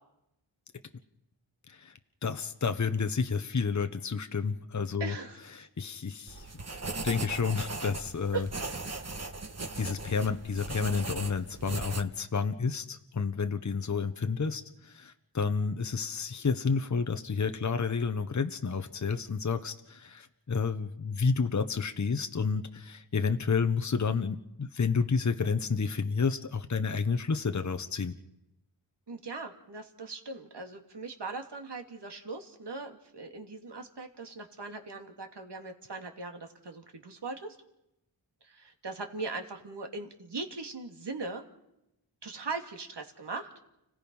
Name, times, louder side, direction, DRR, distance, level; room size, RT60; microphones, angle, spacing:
voice 1, 2.2-5.1 5.5-6.5 7.0-8.5 9.8-28.1, left 5 dB, 40° left, 8 dB, 1.1 m, -30 dB
voice 2, 5.0-5.4 8.3-8.4 29.1-37.6 38.4-41.4 42.2-43.5, right 3 dB, 60° right, 4 dB, 2.8 m, -39 dB
sound 1, 6.3-12.0, right 3 dB, 35° right, 1.6 m, -38 dB
30.0 x 17.0 x 5.5 m, 0.85 s
cardioid pair, 50°, 46 cm